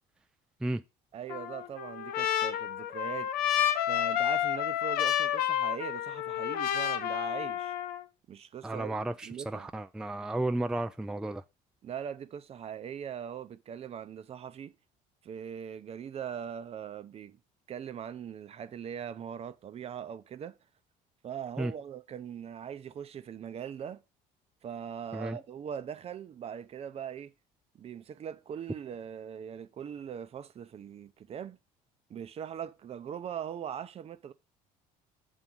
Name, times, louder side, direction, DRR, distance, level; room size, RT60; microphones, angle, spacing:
voice 1, 1.1-3.3 3.9-7.7 8.3-9.0 9.2-9.7 11.8-14.7 15.2-17.4 17.7-20.6 21.2-24.0 24.6-27.3 27.7-31.6 32.1-34.3, right 8 dB, 40° right, 0.6 m, -41 dB
Trumpet, 1.3-8.0, left 11 dB, 70° left, 0.8 m, -30 dB
voice 2, 8.6-11.4 21.6-21.7 25.1-25.4, right 2 dB, 5° right, 0.3 m, -33 dB
7.2 x 3.9 x 6.2 m
cardioid pair, 110°, 16 cm